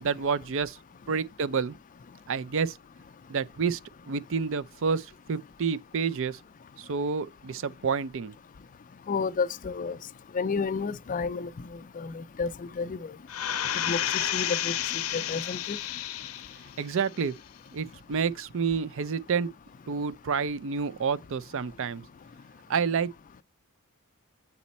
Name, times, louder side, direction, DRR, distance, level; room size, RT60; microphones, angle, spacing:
voice 1, 0.0-0.8 1.1-1.7 2.3-2.8 3.3-3.8 4.1-6.4 6.8-8.3 16.8-17.3 17.7-19.5 19.9-22.0 22.7-23.1, right 5 dB, 60° right, 0.5 m, -29 dB
voice 2, 9.1-10.0 10.3-11.5 12.0-13.1 13.9-14.0 14.3-15.8, left 5 dB, 35° left, 0.4 m, -31 dB
sound 1, 13.3-16.7 17.1-17.2, left 11 dB, 75° left, 0.7 m, -31 dB
8.4 x 4.1 x 4.1 m
head